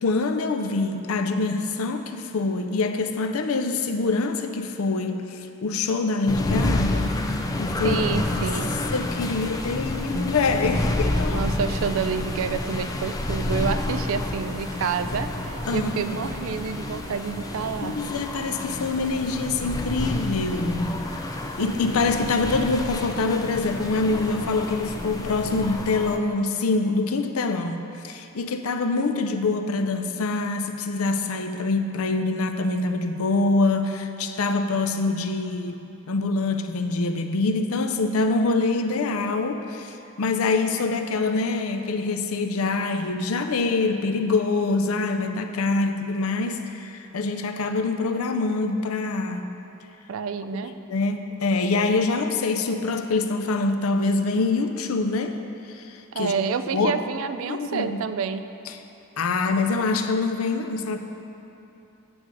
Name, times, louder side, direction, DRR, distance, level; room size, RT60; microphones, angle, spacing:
voice 1, 0.0-7.1 7.6-8.0 8.4-8.5 8.9-11.4 15.7-16.1 17.8-21.2 21.6-35.8 36.1-49.5 50.9-55.4 55.7-56.3 56.7-57.0 57.5-58.0 59.2-61.0, left 3 dB, 85° left, 7 dB, 0.6 m, -25 dB
sound 1, 6.3-26.2, left 1 dB, 15° left, 0.4 m, -29 dB
sound 2, 7.7-25.9, right 1 dB, 90° right, 1.8 m, -43 dB
voice 2, 7.8-8.8 11.3-18.0 50.1-50.7 56.1-58.5, right 6 dB, 70° right, 11 dB, 0.4 m, -28 dB
8.7 x 6.5 x 4.8 m, 2.9 s
head